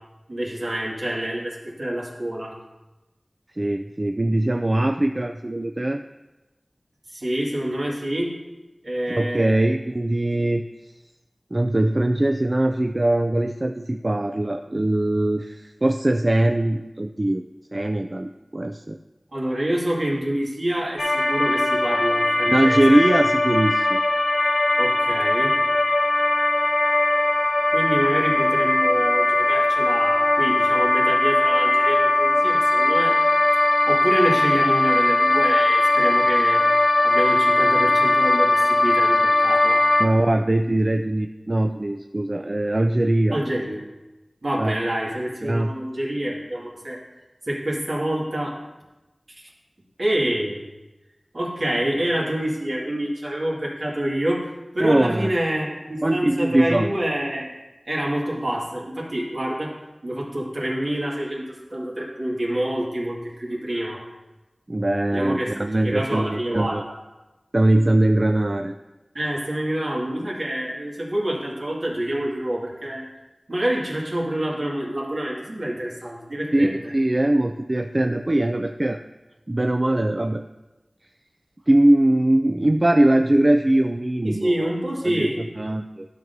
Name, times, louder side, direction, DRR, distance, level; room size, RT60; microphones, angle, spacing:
voice 1, 0.3-2.5 7.1-8.4 8.8-9.5 19.3-23.0 24.8-25.6 27.7-33.2 33.9-36.6 37.0-39.8 43.3-43.8 44.4-47.0 47.5-48.5 50.0-50.6 51.3-54.4 54.7-57.5 57.9-59.8 60.0-64.0 65.1-65.5 65.8-66.8 69.1-73.0 73.5-76.8 84.2-85.4, right 1 dB, 65° right, -4 dB, 2.0 m, -27 dB
voice 2, 3.5-6.0 9.1-10.6 11.5-17.4 17.7-19.0 22.5-24.0 40.0-43.4 44.6-44.8 45.4-45.7 54.8-55.3 56.0-56.9 64.7-66.8 67.5-68.7 76.5-79.0 79.5-80.4 81.7-84.7 85.0-85.3 85.6-86.1, right 1 dB, 40° right, 6 dB, 0.3 m, -21 dB
sound 1, 21.0-40.1, left 2 dB, 60° left, 0.6 m, -19 dB
12.0 x 6.0 x 2.7 m, 1.1 s
wide cardioid pair, 45°, 0 cm